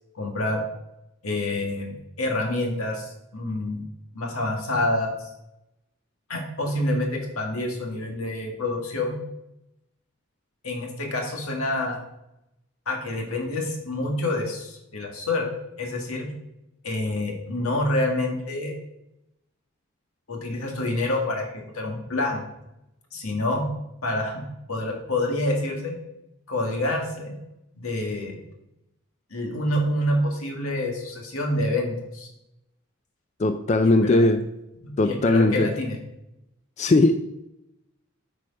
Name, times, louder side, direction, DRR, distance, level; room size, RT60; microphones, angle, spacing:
voice 1, 0.2-0.6 1.2-3.8 4.1-5.3 6.3-9.2 10.6-12.0 12.9-15.5 15.8-16.3 16.8-18.7 20.3-22.4 23.1-23.7 24.0-24.4 24.7-25.9 26.5-27.3 27.8-28.4 29.3-32.3 34.0-34.3 34.8-36.0, left 1 dB, 90° left, 1 dB, 1.9 m, -27 dB
voice 2, 33.4-34.5 35.0-35.7 36.8-37.1, left 2 dB, 30° left, 8 dB, 0.3 m, -19 dB
8.8 x 4.9 x 5.3 m, 0.87 s
head